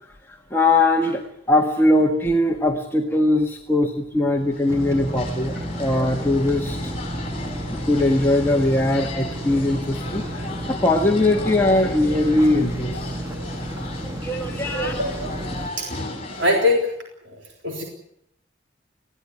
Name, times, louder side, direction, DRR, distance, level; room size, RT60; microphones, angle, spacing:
voice 1, 0.3-1.2 1.5-7.0 7.7-13.2 14.0-14.9, left 2 dB, 10° left, 0 dB, 1.6 m, -21 dB
sound 1, 4.4-16.5, left 2 dB, 30° left, 7.2 m, -36 dB
sound 2, 4.7-15.7, equal, 15° right, 2.3 m, -31 dB
voice 2, 14.7-15.3 15.8-15.9 16.3-17.0 17.3-17.4 17.6-17.8, left 2 dB, 70° right, 1 dB, 3.8 m, -22 dB
21.0 x 16.5 x 9.7 m, 0.77 s
head